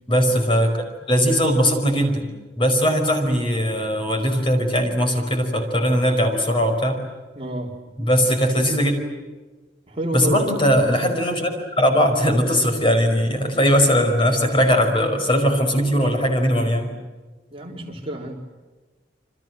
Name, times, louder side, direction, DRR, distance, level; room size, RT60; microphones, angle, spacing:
voice 1, 0.1-0.8 1.1-2.3 2.6-7.0 8.0-8.9 10.1-11.5 11.8-16.9, equal, 30° left, 4 dB, 5.1 m, -19 dB
voice 2, 7.4-8.0 9.9-10.5 17.5-18.4, right 1 dB, 30° right, 0 dB, 4.0 m, -29 dB
28.5 x 26.0 x 7.8 m, 1.2 s
head